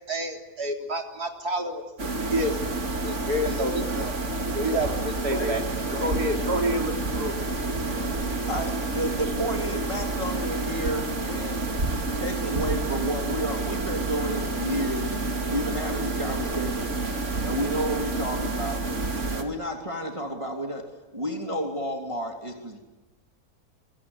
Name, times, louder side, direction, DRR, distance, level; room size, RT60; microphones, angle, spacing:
voice 1, 0.1-1.8 2.2-2.6 3.0-4.1 4.5-5.6 6.0-7.3, right 1 dB, 85° right, 3 dB, 4.4 m, -28 dB
sound 1, 2.0-19.4, right 3 dB, 50° right, 3.0 m, -29 dB
voice 2, 5.3-5.6 5.8-6.4 7.3-8.4, left 1 dB, 25° left, 5 dB, 6.4 m, -38 dB
voice 3, 8.5-11.7 12.1-15.1 15.5-16.9 17.4-18.8 19.3-20.9 21.1-22.8, equal, 20° right, 2 dB, 3.0 m, -31 dB
26.0 x 23.5 x 9.6 m, 1.1 s
omnidirectional pair, 1.6 m